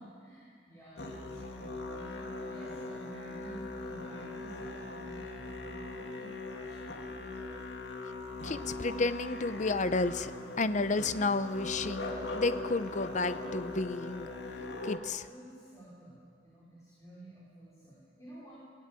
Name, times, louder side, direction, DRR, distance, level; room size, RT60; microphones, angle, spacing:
voice 1, 0.0-7.3 15.3-18.6, right 1 dB, 20° left, -8 dB, 4.9 m, -52 dB
Musical instrument, 1.0-15.0, left 2 dB, 85° left, 2.1 m, -40 dB
voice 2, 8.4-10.3 10.6-14.3 14.8-15.3, left 3 dB, 45° left, 12 dB, 0.7 m, -31 dB
22.5 x 16.0 x 9.0 m, 2.2 s
head